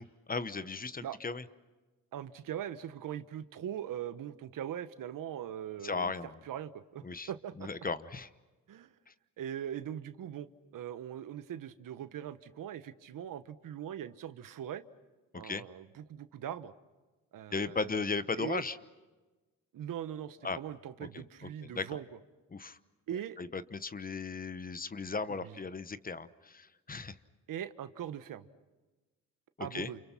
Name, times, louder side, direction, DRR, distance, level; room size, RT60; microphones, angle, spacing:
voice 1, 0.0-1.4 5.8-6.3 7.0-7.3 7.6-8.3 15.3-15.6 17.5-18.8 20.4-20.6 21.0-21.2 21.7-22.0 22.5-22.8 23.4-27.1 29.6-29.9, left 4 dB, 25° left, 14 dB, 1.0 m, -36 dB
voice 2, 2.1-6.1 6.4-7.7 8.7-8.9 9.4-10.5 10.7-14.8 15.3-16.7 17.3-18.0 18.4-18.6 19.7-22.2 23.1-23.4 25.3-25.6 27.5-28.5 29.6-30.0, right 10 dB, 75° right, 12 dB, 1.3 m, -41 dB
29.5 x 29.0 x 5.8 m, 1.2 s
cardioid pair, 110°, 33 cm